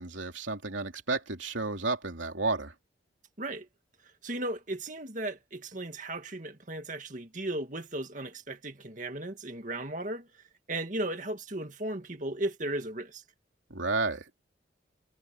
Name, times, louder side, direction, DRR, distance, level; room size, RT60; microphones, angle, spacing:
voice 1, 0.0-2.7 13.7-14.3, right 3 dB, 80° right, 3.0 m, -32 dB
voice 2, 4.2-10.3 10.7-13.2, right 1 dB, 40° right, 2.1 m, -36 dB
head